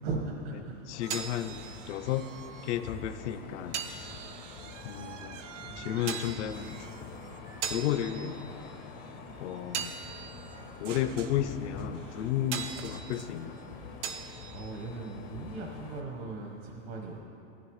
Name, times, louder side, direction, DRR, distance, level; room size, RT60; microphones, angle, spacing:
voice 1, 0.0-0.8 3.9-4.1 5.5-6.1 14.1-17.2, right 3 dB, 60° right, 0 dB, 1.4 m, -39 dB
sound 1, 0.7-16.2, right 7 dB, 40° right, 0.6 m, -43 dB
voice 2, 0.9-2.3 2.6-4.1 4.8-5.4 5.8-7.2 7.7-8.4 9.4-9.9 10.8-13.6, left 11 dB, 70° left, 10 dB, 0.7 m, -33 dB
sound 2, 0.9-16.0, left 6 dB, 25° left, 0.4 m, -46 dB
sound 3, 1.0-3.4 3.7-13.6, right 9 dB, 90° right, 0.7 m, -51 dB
16.5 x 9.2 x 3.2 m, 2.6 s
supercardioid pair, 165°, 35 cm